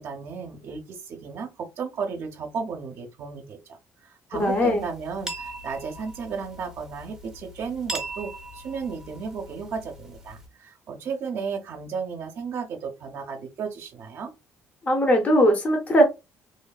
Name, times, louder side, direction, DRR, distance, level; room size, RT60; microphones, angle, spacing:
voice 1, 0.0-3.8 4.0-14.3, right 5 dB, 55° right, 0.6 m, -34 dB
sound 1, 4.3-10.5, right 2 dB, 10° right, 0.7 m, -40 dB
voice 2, 4.4-4.8 14.8-16.0, equal, 25° left, 0.7 m, -19 dB
3.1 x 2.0 x 2.2 m
cardioid pair, 125°, 5 cm